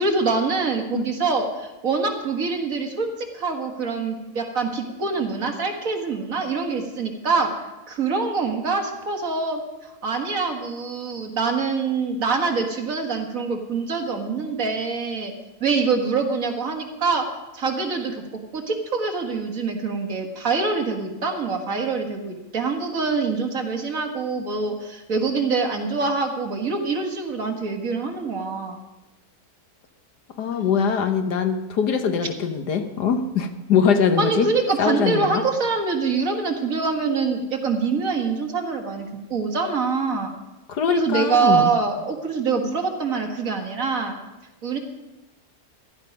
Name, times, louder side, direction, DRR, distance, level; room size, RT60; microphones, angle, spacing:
voice 1, 0.0-7.6 7.9-9.6 10.0-15.3 15.6-17.3 17.5-18.2 18.5-28.8 34.2-40.3 40.9-44.1 44.6-44.8, right 4 dB, 55° right, 3 dB, 2.1 m, -25 dB
voice 2, 30.4-34.5 34.8-35.4 40.7-41.7, left 6 dB, 80° left, 8 dB, 1.7 m, -22 dB
15.5 x 12.5 x 5.3 m, 1.0 s
omnidirectional pair, 1.7 m